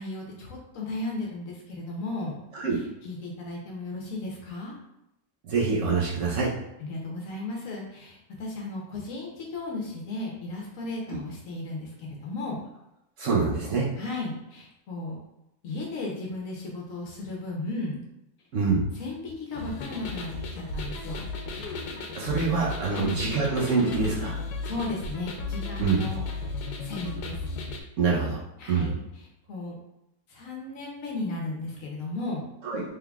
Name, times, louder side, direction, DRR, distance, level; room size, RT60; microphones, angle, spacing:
voice 1, 0.0-2.4 2.7-4.8 6.8-12.6 14.0-15.2 15.6-18.0 18.9-21.3 22.9-23.2 24.6-26.5 26.8-27.4 28.6-29.7 30.3-32.5, left 2 dB, 65° left, -2 dB, 1.0 m, -35 dB
voice 2, 5.4-6.5 13.2-13.9 18.5-18.8 22.1-24.3 25.8-26.0 28.0-28.4 28.7-28.9 32.6-32.8, right 4 dB, 60° right, -5 dB, 0.9 m, -25 dB
sound 1, 19.5-27.8, left 3 dB, 85° left, 1.1 m, -35 dB
3.7 x 3.3 x 2.3 m, 0.86 s
omnidirectional pair, 1.7 m